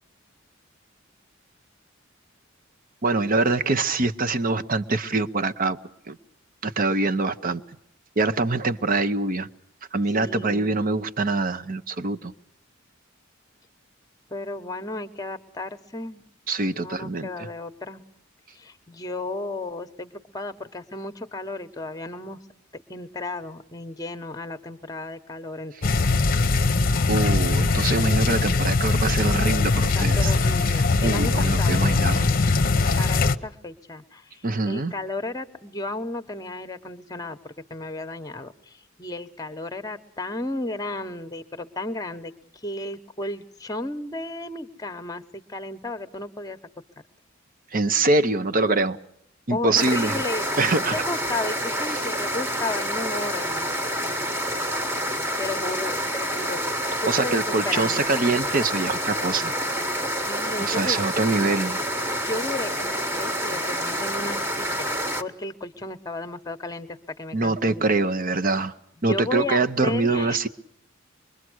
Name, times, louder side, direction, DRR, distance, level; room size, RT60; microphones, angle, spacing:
voice 1, 3.0-5.8 6.1-6.2 6.6-7.6 8.2-9.5 9.9-12.3 16.5-17.5 27.1-30.3 30.7-32.3 32.8-33.0 34.4-34.9 47.7-49.0 49.5-50.2 50.6-51.0 57.1-59.5 60.6-61.8 67.3-68.7 69.0-70.5, right 3 dB, 45° right, 11 dB, 0.9 m, -24 dB
voice 2, 10.1-10.7 14.3-16.3 16.7-18.0 18.5-22.4 22.7-26.1 30.0-32.1 33.0-42.3 42.6-46.6 49.5-50.5 50.9-53.7 55.4-58.1 60.1-61.0 62.2-64.9 65.2-67.9 69.1-70.4, left 2 dB, 20° left, 10 dB, 1.1 m, -34 dB
sound 1, 25.8-33.3, left 3 dB, 45° left, 0.8 m, -21 dB
sound 2, 49.7-65.2, equal, 15° right, 1.3 m, -28 dB
25.5 x 22.5 x 6.3 m, 0.74 s
head